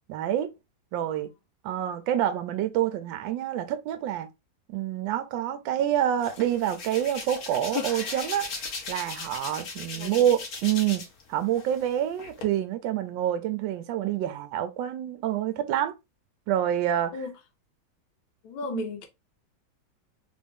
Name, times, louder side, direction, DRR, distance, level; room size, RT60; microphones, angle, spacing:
voice 1, 0.1-0.5 0.9-1.3 1.6-4.3 4.7-8.5 8.9-11.0 11.3-15.9 16.5-17.1 18.7-18.8, right 11 dB, 75° right, 1.2 m, -27 dB
Hands, 6.2-11.2 11.5-12.4, left 5 dB, 55° left, 1.3 m, -37 dB
voice 2, 9.8-10.2 17.1-17.4 18.4-19.1, left 4 dB, 90° left, 1.6 m, -36 dB
3.6 x 2.6 x 3.5 m
omnidirectional pair, 2.1 m